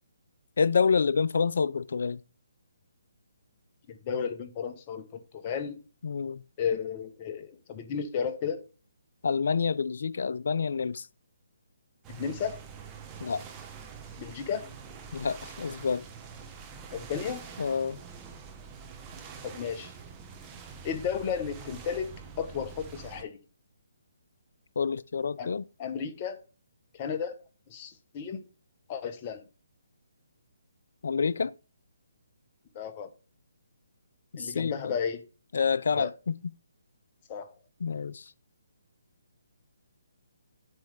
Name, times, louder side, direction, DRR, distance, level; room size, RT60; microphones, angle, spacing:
voice 1, 0.6-2.2 6.0-6.4 9.2-11.1 13.2-13.4 15.1-16.1 17.6-18.0 24.8-25.6 31.0-31.5 34.3-34.9 35.5-36.4 37.8-38.3, left 5 dB, 65° left, 0.4 m, -28 dB
voice 2, 3.9-5.8 6.6-8.6 12.1-12.6 14.2-14.7 16.9-17.4 19.4-19.9 20.8-22.1 22.4-23.4 25.4-25.5 25.8-26.4 26.9-27.4 27.7-28.4 28.9-29.4 32.7-33.1 34.4-35.2 36.0-36.1 37.3-37.5, left 7 dB, 30° left, 0.9 m, -33 dB
sound 1, 12.0-23.2, right 6 dB, 20° right, 0.9 m, -45 dB
7.6 x 3.2 x 4.8 m
figure-of-eight pair, 145°, 0 cm